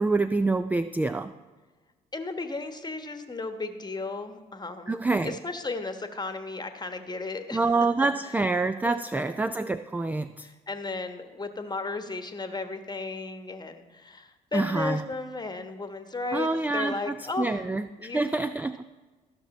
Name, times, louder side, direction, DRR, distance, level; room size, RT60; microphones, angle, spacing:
voice 1, 0.0-1.3 4.9-5.4 7.5-10.5 14.5-15.0 16.3-18.8, right 3 dB, 10° right, 12 dB, 0.3 m, -27 dB
voice 2, 2.1-7.6 8.0-8.4 8.8-9.3 10.4-17.6 18.0-18.4, left 3 dB, 20° left, 8 dB, 1.2 m, -35 dB
14.0 x 6.0 x 4.3 m, 1.3 s
hypercardioid pair, 50°, 21 cm